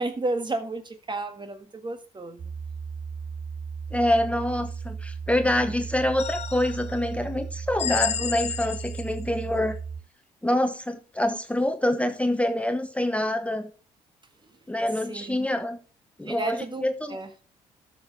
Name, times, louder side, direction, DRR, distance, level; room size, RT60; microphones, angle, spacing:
voice 1, 0.0-2.5 15.1-15.5 16.2-17.3, right 2 dB, 30° right, 1.6 m, -32 dB
sound 1, 2.4-10.0, right 6 dB, 50° right, 0.9 m, -36 dB
voice 2, 3.9-9.8 10.4-13.7 14.7-15.8 16.2-17.2, left 1 dB, 10° left, 0.9 m, -26 dB
sound 2, 6.2-7.0 7.8-9.2, left 7 dB, 45° left, 0.6 m, -31 dB
13.0 x 6.2 x 3.6 m
supercardioid pair, 60°, 15 cm